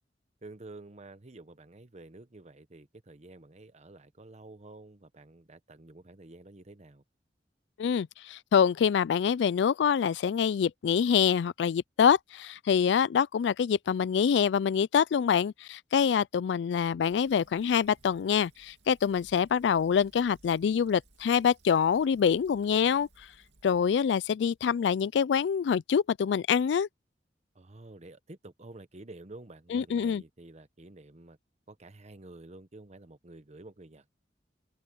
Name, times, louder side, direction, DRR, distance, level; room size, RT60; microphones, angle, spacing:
voice 1, 0.4-7.0 27.5-31.4 31.7-34.1, right 2 dB, 40° right, 1.1 m, -50 dB
voice 2, 7.8-23.1 23.6-26.9 29.7-30.2, left 7 dB, 75° left, 0.3 m, -25 dB
Fill (with liquid), 17.1-24.7, right 2 dB, 80° right, 2.7 m, -62 dB
head